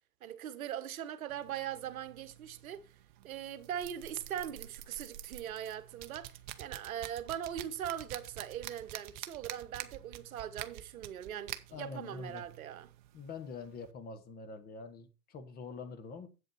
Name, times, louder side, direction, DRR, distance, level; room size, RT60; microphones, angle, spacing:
voice 1, 0.2-2.9 3.2-12.9, right 10 dB, 55° right, 1.2 m, -41 dB
sound 1, 1.3-13.9, right 13 dB, 30° right, 0.7 m, -48 dB
voice 2, 11.7-12.4 13.1-16.3, left 4 dB, 20° left, 1.2 m, -45 dB
8.0 x 7.8 x 4.4 m
figure-of-eight pair, 115°, 49 cm